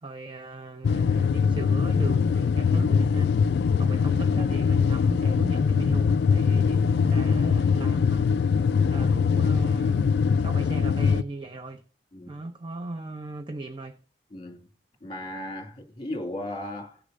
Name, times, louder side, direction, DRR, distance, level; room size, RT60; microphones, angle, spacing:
voice 1, 0.0-3.3 3.8-8.3 8.9-10.1 10.4-11.8 12.3-14.0, right 2 dB, 25° right, 0.6 m, -37 dB
sound 1, 0.8-11.2, left 6 dB, 60° left, 0.3 m, -22 dB
voice 2, 12.1-12.4 14.3-14.7 15.0-17.0, left 1 dB, 30° left, 2.3 m, -36 dB
17.0 x 6.5 x 2.6 m
head